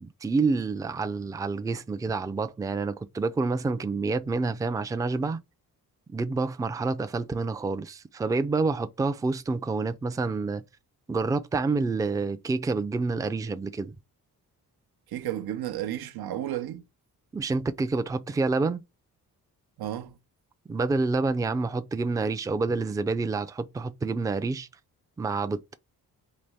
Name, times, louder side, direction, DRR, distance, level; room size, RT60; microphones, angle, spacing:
voice 1, 0.0-5.4 6.1-10.6 11.1-13.9 17.3-18.8 20.7-24.7 25.2-25.7, right 3 dB, 10° right, 0.3 m, -28 dB
voice 2, 15.1-16.8 19.8-20.2, right 12 dB, 90° right, 0.6 m, -32 dB
4.0 x 3.0 x 3.3 m
cardioid pair, 105°, 36 cm